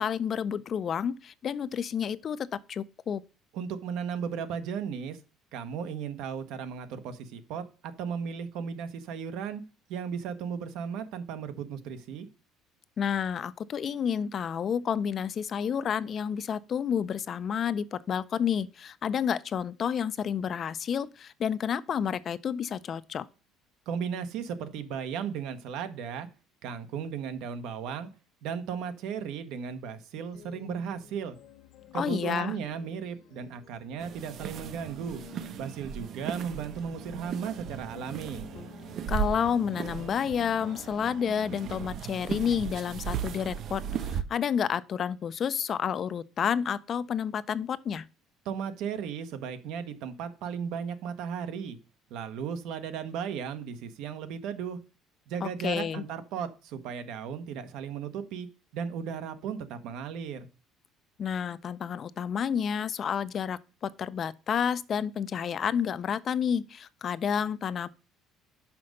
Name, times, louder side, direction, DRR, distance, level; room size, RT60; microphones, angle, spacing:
voice 1, 0.0-3.2 13.0-23.3 31.9-32.6 39.1-48.0 55.4-56.0 61.2-67.9, left 8 dB, 40° left, 0.4 m, -30 dB
voice 2, 3.5-5.2 5.5-9.6 9.9-12.3 23.9-26.3 26.6-28.1 28.4-31.4 31.9-35.2 35.6-38.5 48.4-51.8 52.1-54.8 55.3-58.5 58.7-60.5, right 7 dB, 75° right, 1.0 m, -35 dB
sound 1, 30.3-41.7, left 8 dB, 65° left, 1.2 m, -52 dB
sound 2, 34.0-44.2, right 8 dB, 50° right, 0.5 m, -37 dB
5.9 x 5.2 x 6.3 m
cardioid pair, 135°, 0 cm